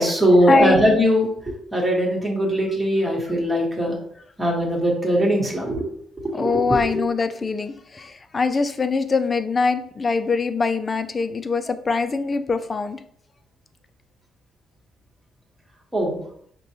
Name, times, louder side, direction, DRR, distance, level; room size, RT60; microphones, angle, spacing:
voice 1, 0.0-4.0 4.4-5.9 6.2-7.0 15.9-16.2, equal, 15° right, -2 dB, 1.4 m, -20 dB
voice 2, 6.3-13.0, left 4 dB, 35° left, 10 dB, 0.4 m, -23 dB
5.1 x 2.2 x 2.9 m, 0.65 s
cardioid pair, 90°, 0 cm